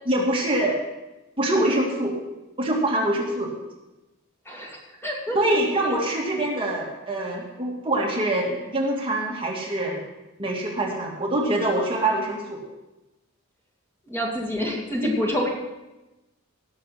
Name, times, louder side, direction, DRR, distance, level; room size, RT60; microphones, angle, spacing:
voice 1, 0.1-0.8 1.4-2.2 2.6-3.5 5.3-10.0 10.4-12.6, right 1 dB, 25° right, -2 dB, 2.2 m, -24 dB
voice 2, 4.5-5.4 14.1-15.5, equal, 10° left, -2 dB, 2.3 m, -27 dB
18.0 x 6.8 x 5.8 m, 1.0 s
head